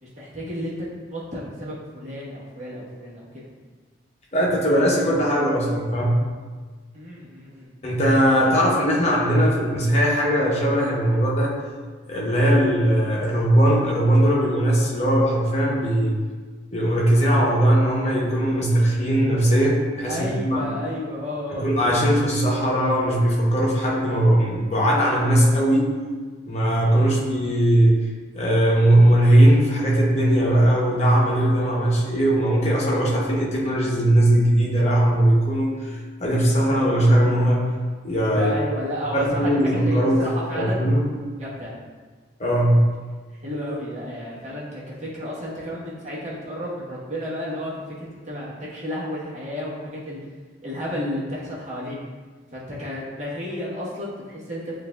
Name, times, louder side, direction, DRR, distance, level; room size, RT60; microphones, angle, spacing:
voice 1, 0.0-3.5 6.9-7.7 8.1-9.4 20.1-21.7 26.9-27.1 38.3-40.8 41.4-41.7 43.4-50.2 50.6-52.0 52.5-54.7, equal, 35° right, -8 dB, 1.1 m, -32 dB
voice 2, 4.3-6.1 7.8-11.5 12.1-16.2 16.7-20.7 21.5-25.9 26.4-28.0 28.3-37.7 38.0-38.5 39.1-40.3 40.5-41.0 42.4-42.8, right 1 dB, 35° left, -4 dB, 0.8 m, -19 dB
7.5 x 2.6 x 2.3 m, 1.4 s
head